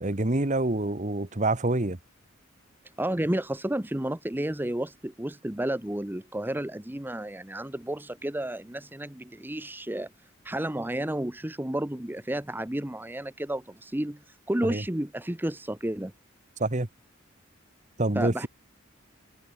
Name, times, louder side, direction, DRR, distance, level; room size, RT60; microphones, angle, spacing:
voice 1, 0.0-2.0 14.6-14.8 16.6-16.9 18.0-18.5, right 2 dB, 35° right, 1.5 m, -26 dB
voice 2, 3.0-10.1 10.4-16.1 18.1-18.5, right 1 dB, 10° right, 0.8 m, -31 dB
head